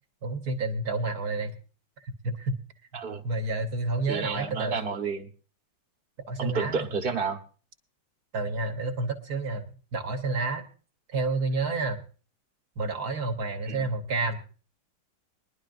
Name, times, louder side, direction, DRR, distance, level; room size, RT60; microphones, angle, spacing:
voice 1, 0.2-1.6 2.0-2.6 3.2-4.8 6.3-6.9 8.3-10.7 11.1-12.0 12.8-14.4, right 3 dB, 55° right, 6 dB, 1.5 m, -30 dB
voice 2, 2.9-3.2 4.1-5.3 6.4-7.4 13.7-13.9, right 5 dB, 35° right, 4 dB, 1.1 m, -30 dB
22.5 x 11.0 x 2.5 m, 0.37 s
omnidirectional pair, 2.2 m